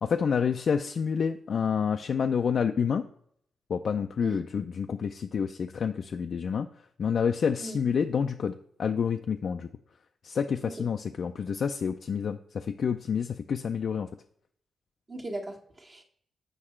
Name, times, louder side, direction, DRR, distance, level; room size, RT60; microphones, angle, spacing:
voice 1, 0.0-3.0 3.7-6.7 7.0-9.7 10.2-14.1, left 6 dB, 65° left, 5 dB, 0.4 m, -28 dB
voice 2, 15.1-16.0, right 1 dB, 40° right, 1 dB, 1.4 m, -38 dB
6.6 x 4.8 x 4.4 m, 0.66 s
cardioid pair, 60°, 0 cm